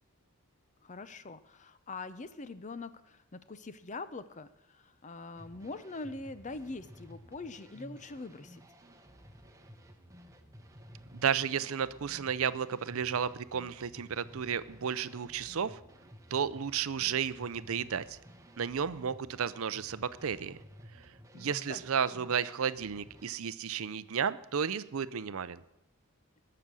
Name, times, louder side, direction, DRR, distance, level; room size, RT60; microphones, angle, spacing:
voice 1, 0.8-8.6 21.3-21.8, left 3 dB, 35° left, 13 dB, 0.6 m, -43 dB
sound 1, 5.3-23.3, equal, 15° right, 1.1 m, -54 dB
voice 2, 11.1-15.8 16.3-18.2 18.6-20.6 21.3-25.6, right 7 dB, 65° right, 16 dB, 0.5 m, -33 dB
20.0 x 6.8 x 6.2 m, 0.89 s
head